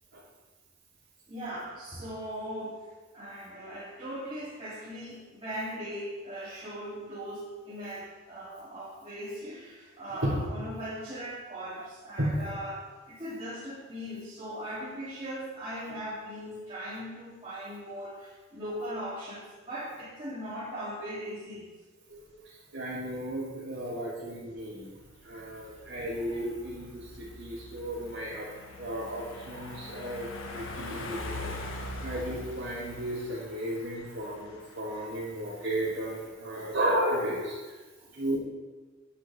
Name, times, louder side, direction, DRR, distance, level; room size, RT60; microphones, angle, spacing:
voice 1, 1.3-2.9 3.1-21.6 38.0-38.1, equal, 25° right, -11 dB, 3.3 m, -39 dB
voice 2, 22.1-24.9 25.2-28.5 28.8-37.8 38.1-38.4, right 1 dB, 65° right, -10 dB, 3.4 m, -34 dB
sound 1, 24.6-36.3, left 2 dB, 75° left, 1.6 m, -43 dB
12.5 x 11.0 x 3.7 m, 1.3 s
head